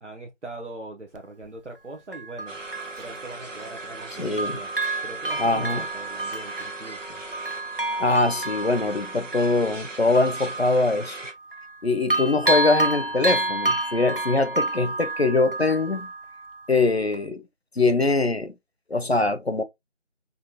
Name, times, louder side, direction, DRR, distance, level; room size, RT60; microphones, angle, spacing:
voice 1, 0.0-2.6 3.0-4.7 5.0-7.2, right 2 dB, 70° right, 0.9 m, -41 dB
Bell, 1.2-1.3 2.1-4.1 4.4-11.8 12.1-16.7 17.1-17.2, right 2 dB, 50° right, 0.5 m, -30 dB
sound 1, 2.5-11.3, right 2 dB, 90° right, 1.1 m, -40 dB
voice 2, 4.2-4.6 5.4-5.8 8.0-11.2 11.8-16.1 16.7-17.4 17.8-18.6 18.9-19.6, left 3 dB, 60° left, 0.6 m, -23 dB
5.5 x 2.4 x 2.8 m
figure-of-eight pair, 175°, 37 cm